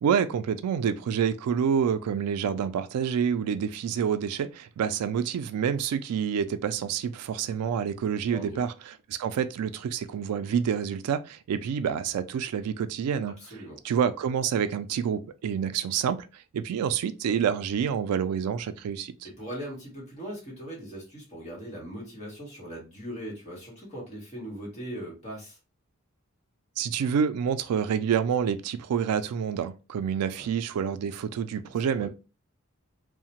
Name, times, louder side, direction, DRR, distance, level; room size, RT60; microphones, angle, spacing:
voice 1, 0.0-13.3 13.8-19.1 26.8-32.1, right 7 dB, 90° right, 0.3 m, -28 dB
voice 2, 8.3-8.6 13.4-13.8 19.2-25.6 30.3-30.5 31.6-32.1, equal, 30° left, 1.1 m, -40 dB
2.7 x 2.0 x 2.9 m
head